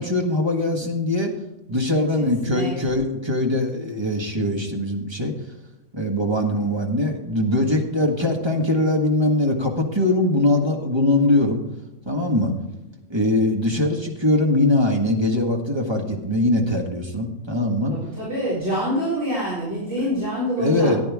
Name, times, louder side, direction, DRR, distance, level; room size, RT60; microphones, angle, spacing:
voice 1, 0.0-1.3 1.7-5.3 5.9-11.6 12.0-12.5 13.1-17.9 20.0-20.1 20.6-21.0, left 1 dB, 20° right, 2 dB, 1.6 m, -21 dB
voice 2, 1.9-2.7 17.9-21.0, equal, 65° right, -9 dB, 4.5 m, -26 dB
14.0 x 10.0 x 3.6 m, 0.97 s
omnidirectional pair, 1.3 m